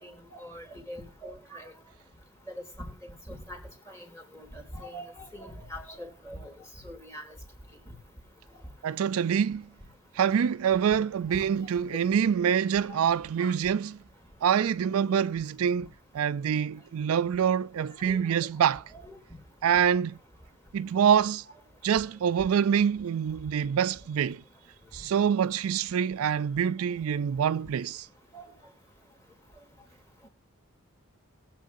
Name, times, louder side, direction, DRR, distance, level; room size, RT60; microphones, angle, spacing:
voice 1, 0.0-1.7 2.8-3.6 3.9-6.5 6.8-7.2 11.3-11.5 13.4-13.5 15.1-15.2 18.0-18.3 18.9-19.2 28.3-28.5 30.2-30.3, equal, 15° left, 3.0 m, -43 dB
voice 2, 8.8-9.7 10.1-14.0 14.4-15.9 16.1-18.8 19.6-20.2 20.7-21.4 21.8-24.4 24.9-28.1, right 8 dB, 70° right, 0.4 m, -25 dB
21.5 x 7.3 x 2.6 m
head